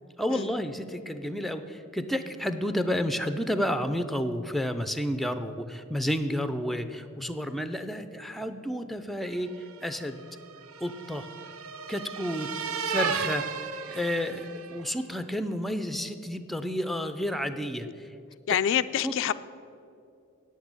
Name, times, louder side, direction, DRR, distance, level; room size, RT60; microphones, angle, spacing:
voice 1, 0.2-10.2 10.8-11.3 11.9-12.5 12.9-13.5 13.9-18.1 18.5-18.6 19.0-19.2, equal, ahead, 9 dB, 0.4 m, -31 dB
sound 1, 9.5-14.9, right 6 dB, 85° right, 0.6 m, -35 dB
voice 2, 18.5-19.3, left 10 dB, 60° left, 13 dB, 0.3 m, -26 dB
8.8 x 8.2 x 8.8 m, 2.6 s
head